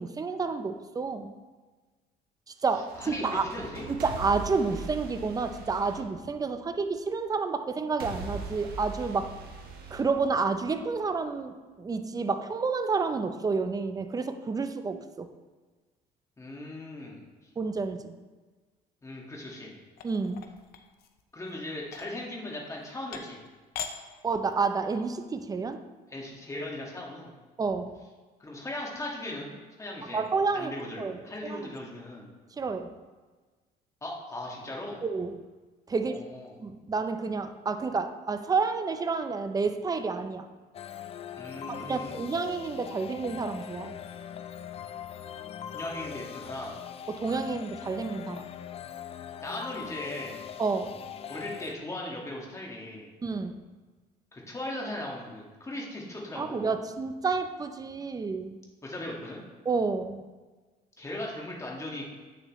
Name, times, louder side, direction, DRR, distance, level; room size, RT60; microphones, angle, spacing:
voice 1, 0.0-1.3 2.6-3.5 3.9-9.4 9.9-15.3 17.6-18.1 20.0-20.5 24.2-25.8 27.6-28.0 30.1-31.7 32.6-32.9 35.0-35.4 35.9-36.1 36.6-40.5 41.7-44.0 47.1-48.5 50.6-51.0 53.2-53.6 56.4-58.6 59.7-60.2, right 4 dB, 20° right, 8 dB, 0.6 m, -30 dB
sound 1, 2.7-6.9 8.0-10.9, right 4 dB, 65° right, 1.2 m, -41 dB
voice 2, 3.0-3.9 16.4-17.2 19.0-19.7 21.3-23.4 26.1-27.3 28.4-29.5 29.8-30.3 30.5-32.3 34.0-35.0 35.9-36.6 41.4-42.2 45.7-46.7 49.4-50.4 51.3-53.1 54.3-56.7 58.8-59.4 61.0-62.0, left 1 dB, 20° left, -2 dB, 1.8 m, -38 dB
sound 2, 20.0-21.2 21.8-22.1 22.8-22.9 23.1-23.5 23.7-23.9 24.3-24.8, left 7 dB, 65° left, 0.7 m, -40 dB
sound 3, 40.7-51.8, left 9 dB, 35° left, 0.4 m, -41 dB
8.7 x 6.9 x 3.1 m, 1.3 s
cardioid pair, 110°, 17 cm